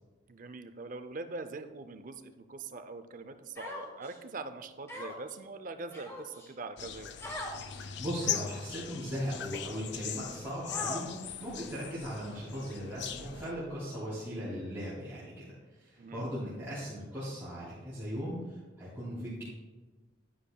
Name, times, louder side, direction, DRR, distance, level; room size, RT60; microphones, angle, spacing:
voice 1, 0.3-7.2 16.0-16.2, right 3 dB, 40° right, 9 dB, 0.5 m, -43 dB
Human voice, 3.6-4.2 4.9-5.3 5.9-6.5 7.2-7.6 8.2-8.6 9.3-9.4 10.7-11.3, left 1 dB, 15° left, 1.3 m, -41 dB
sound 1, 6.8-13.5, left 9 dB, 60° left, 0.5 m, -40 dB
voice 2, 7.7-19.4, equal, 10° right, -11 dB, 2.5 m, -38 dB
10.0 x 10.0 x 2.3 m, 1.3 s
head